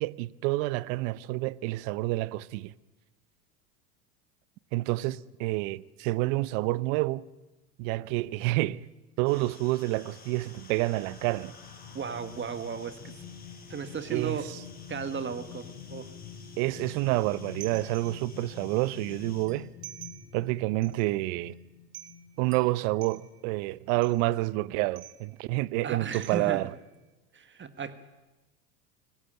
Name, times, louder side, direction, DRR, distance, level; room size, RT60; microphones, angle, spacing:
voice 1, 0.0-2.7 4.7-7.2 7.8-8.8 9.2-11.5 14.1-14.6 16.6-19.7 20.3-21.5 22.4-26.7, right 19 dB, 55° right, 0.9 m, -28 dB
sound 1, 9.2-19.5, left 4 dB, 20° left, 7.0 m, -53 dB
sound 2, 10.1-22.9 23.4-23.5, left 8 dB, 55° left, 4.3 m, -47 dB
voice 2, 11.9-13.1 13.7-14.5 14.9-16.1 25.8-26.7 27.3-28.0, right 6 dB, 25° right, 1.6 m, -35 dB
sound 3, 17.6-18.5 19.1-20.5 20.8-21.1 21.5-21.6 21.9-23.6 24.0-24.4 25.0-25.5 26.1-26.9, right 13 dB, 85° right, 1.8 m, -49 dB
25.0 x 18.0 x 8.9 m
hypercardioid pair, 85°, 45 cm